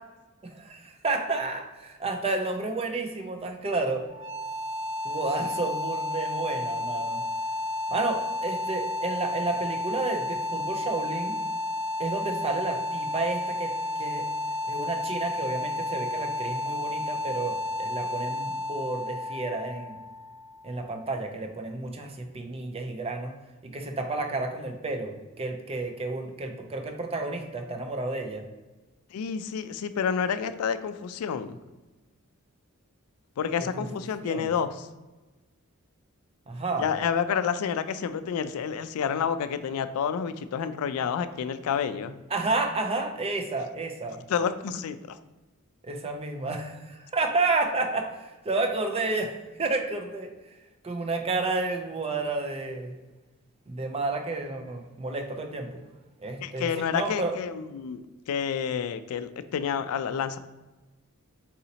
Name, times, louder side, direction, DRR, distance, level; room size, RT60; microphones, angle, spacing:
voice 1, 0.4-4.0 5.0-7.2 7.9-11.4 12.0-13.7 14.0-14.3 14.7-20.0 20.6-23.3 23.6-28.5 33.8-33.9 34.2-34.5 36.5-36.9 42.3-44.2 45.8-49.3 49.6-50.3 50.8-53.0 53.7-55.8 56.2-57.3, right 3 dB, 25° right, 4 dB, 0.5 m, -31 dB
sound 1, 4.1-21.0, left 2 dB, 65° right, 1.1 m, -32 dB
voice 2, 29.1-31.6 33.4-34.9 36.8-42.1 44.3-45.2 56.4-60.4, left 7 dB, 75° left, 11 dB, 0.3 m, -29 dB
4.1 x 2.8 x 3.9 m, 1.2 s
head